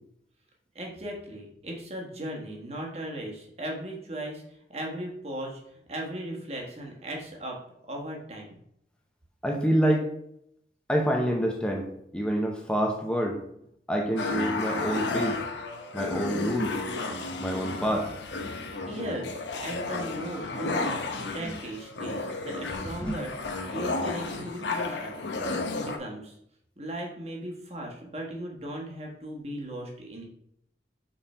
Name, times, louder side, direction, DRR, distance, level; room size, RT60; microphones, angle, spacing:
voice 1, 0.7-8.6 18.9-23.3 23.7-25.4 25.8-26.4 26.8-30.2, right 1 dB, 35° right, 0 dB, 1.3 m, -37 dB
voice 2, 9.4-10.1 10.9-11.9 12.1-13.4 13.9-15.4 15.9-16.8 17.4-18.1 21.4-21.6 23.0-23.2, equal, 5° left, 1 dB, 0.8 m, -27 dB
sound 1, 14.2-26.0, left 3 dB, 85° left, 0.8 m, -33 dB
5.5 x 4.3 x 4.3 m, 0.72 s
head